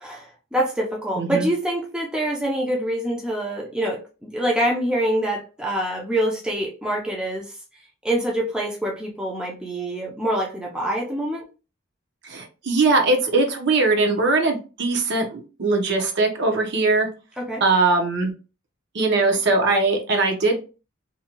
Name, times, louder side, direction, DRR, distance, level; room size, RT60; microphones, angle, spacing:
voice 1, 0.0-7.5 8.0-11.4 17.4-17.6, right 1 dB, 5° right, 0.5 m, -25 dB
voice 2, 1.1-1.5 12.2-17.1 17.6-18.3 18.9-20.6, right 3 dB, 55° right, 0.6 m, -20 dB
2.6 x 2.2 x 2.8 m
head